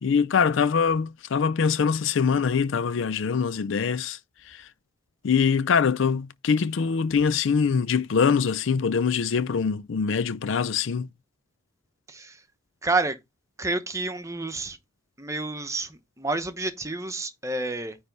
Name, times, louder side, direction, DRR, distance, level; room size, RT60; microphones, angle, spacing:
voice 1, 0.0-4.2 4.5-4.7 5.2-11.1, left 6 dB, 70° left, 0.4 m, -23 dB
voice 2, 12.8-13.2 13.6-14.8 15.2-18.0, right 2 dB, 15° right, 0.9 m, -29 dB
9.6 x 3.4 x 5.3 m
head